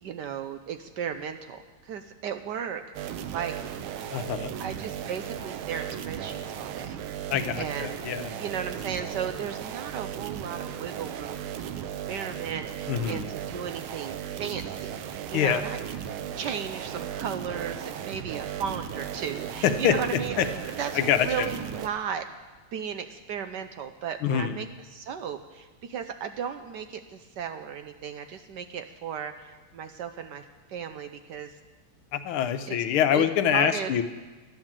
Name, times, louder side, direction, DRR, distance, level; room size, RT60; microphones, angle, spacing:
voice 1, 0.0-2.8 3.3-3.5 4.6-7.0 7.6-8.0 8.3-11.5 12.1-15.8 16.4-22.2 22.7-31.5 32.7-32.8 33.1-33.9, right 7 dB, 70° right, 8 dB, 1.1 m, -35 dB
sound 1, 2.9-21.9, right 9 dB, 90° right, 1.6 m, -36 dB
voice 2, 4.1-4.5 7.3-8.3 12.9-13.3 15.3-15.6 19.6-20.0 20.4-20.5 20.9-21.5 24.2-24.6 32.1-34.0, left 9 dB, 80° left, 10 dB, 1.6 m, -25 dB
11.5 x 10.5 x 7.4 m, 1.3 s
omnidirectional pair, 2.3 m